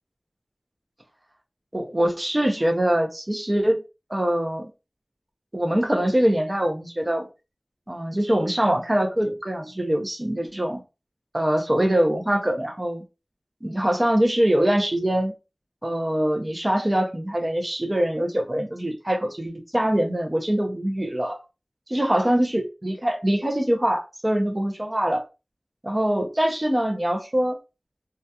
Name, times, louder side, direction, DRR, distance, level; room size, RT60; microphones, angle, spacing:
voice 1, 1.7-3.8 4.1-4.6 5.5-7.3 7.9-10.8 11.3-13.0 13.6-15.3 15.8-21.4 21.9-25.2 25.8-27.6, right 1 dB, 25° right, 0.5 m, -23 dB
2.2 x 2.2 x 2.7 m
wide cardioid pair, 50°, 0 cm